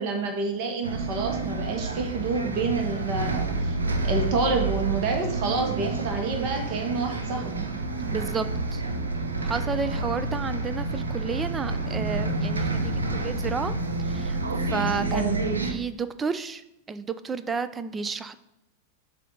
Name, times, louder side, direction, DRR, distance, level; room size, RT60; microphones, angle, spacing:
voice 1, 0.0-3.7 4.0-7.7 15.1-15.4, right 3 dB, 45° right, 3 dB, 1.3 m, -28 dB
Bus, 0.8-15.7, right 3 dB, 75° right, 0.7 m, -29 dB
voice 2, 8.1-8.5 8.7-8.8 9.4-13.7 14.0-15.3 15.6-18.3, right 5 dB, 15° right, 12 dB, 0.4 m, -31 dB
7.3 x 2.7 x 5.5 m, 0.88 s
figure-of-eight pair, 90°, 0 cm